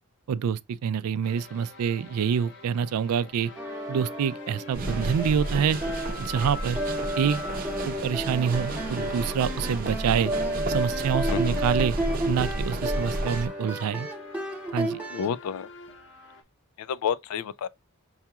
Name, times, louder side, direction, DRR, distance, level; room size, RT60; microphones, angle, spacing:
voice 1, 0.3-3.5 3.9-5.8 6.2-6.8 7.2-7.4 7.9-10.3 10.7-11.9 12.3-14.1 14.7-15.0, right 7 dB, 85° right, 0.3 m, -26 dB
sound 1, 1.2-16.4, left 3 dB, 50° left, 0.7 m, -45 dB
sound 2, 3.6-15.3, right 1 dB, 5° right, 0.8 m, -32 dB
sound 3, 4.7-13.5, right 2 dB, 40° right, 0.5 m, -32 dB
voice 2, 11.3-11.6 15.1-15.7 16.8-17.7, left 7 dB, 85° left, 0.3 m, -30 dB
5.6 x 2.3 x 2.8 m
head